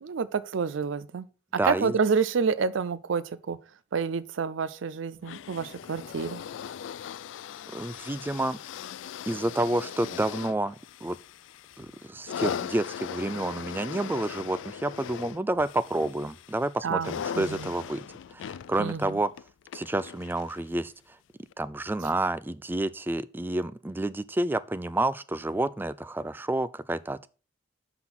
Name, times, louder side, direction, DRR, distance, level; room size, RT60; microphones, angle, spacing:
voice 1, 0.0-1.3 1.6-3.6 3.9-6.4 16.8-17.1 17.4-17.7 18.8-19.2 22.0-22.1, right 5 dB, 80° right, 0.5 m, -28 dB
voice 2, 1.6-2.0 7.7-8.6 9.3-10.7 11.0-11.2 11.8-18.1 18.3-19.3 19.7-20.9 21.6-27.3, right 2 dB, 10° right, 0.3 m, -29 dB
sound 1, 5.2-20.7 21.5-21.6, left 8 dB, 70° left, 0.3 m, -39 dB
5.8 x 5.8 x 6.0 m
head